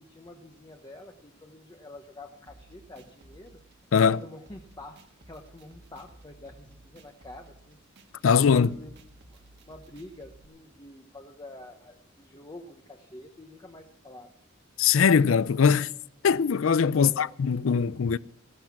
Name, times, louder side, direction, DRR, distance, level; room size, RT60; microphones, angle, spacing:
voice 1, 0.0-3.6 4.0-7.8 8.2-8.9 9.3-9.4 9.6-14.3 16.9-17.3, left 2 dB, 20° left, 1.0 m, -47 dB
sound 1, 2.5-10.4, right 2 dB, 55° right, 1.6 m, -55 dB
voice 2, 8.2-8.7 14.8-15.9 16.2-18.2, left 6 dB, 90° left, 0.5 m, -21 dB
15.5 x 12.0 x 5.9 m
head